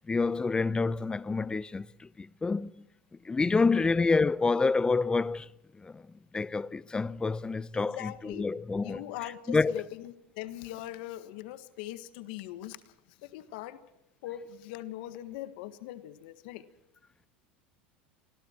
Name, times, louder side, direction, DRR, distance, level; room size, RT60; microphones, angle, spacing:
voice 1, 0.1-1.9 2.2-2.7 3.3-5.5 5.8-6.0 6.3-9.0 9.5-9.7, left 4 dB, 15° left, 0.7 m, -27 dB
voice 2, 7.7-8.5 8.8-13.8 14.2-16.6, left 14 dB, 70° left, 1.6 m, -41 dB
27.5 x 20.5 x 4.5 m
hypercardioid pair, 95°, 5 cm